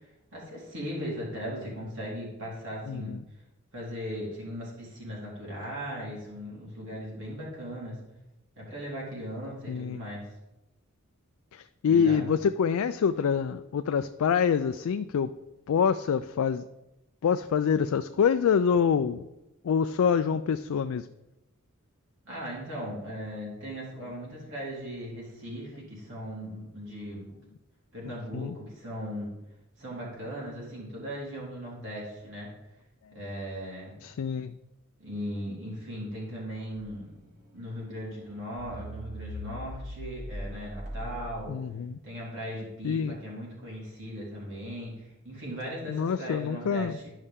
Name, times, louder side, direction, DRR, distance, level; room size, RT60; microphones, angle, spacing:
voice 1, 0.3-3.2 3.7-8.0 8.6-10.3 11.9-12.2 22.2-27.3 27.9-29.3 29.8-32.5 33.1-34.1 35.0-37.1 37.5-41.6 42.0-47.1, equal, 60° right, -5 dB, 3.4 m, -38 dB
voice 2, 2.9-3.2 9.7-10.0 11.5-15.3 15.7-16.6 17.2-19.3 19.6-21.1 28.3-28.6 34.0-34.5 41.5-42.0 42.8-43.2 45.9-46.9, left 7 dB, 85° left, 9 dB, 0.4 m, -26 dB
sound 1, 36.8-37.1 37.7-37.9 38.2-38.3 38.6-41.8, equal, 40° right, 1.9 m, -40 dB
11.5 x 5.5 x 3.6 m, 0.94 s
head